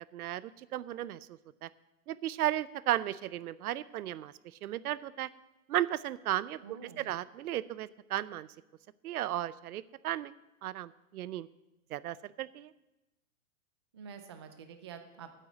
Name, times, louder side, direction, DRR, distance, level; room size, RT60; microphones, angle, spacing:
voice 1, 0.1-1.7 2.1-5.3 5.7-8.5 9.0-10.3 10.6-11.5 11.9-12.7, right 13 dB, 80° right, 18 dB, 0.7 m, -35 dB
voice 2, 6.6-7.1 13.9-15.3, right 6 dB, 20° right, 7 dB, 0.3 m, -48 dB
9.1 x 8.2 x 8.4 m, 0.99 s
hypercardioid pair, 160°, 43 cm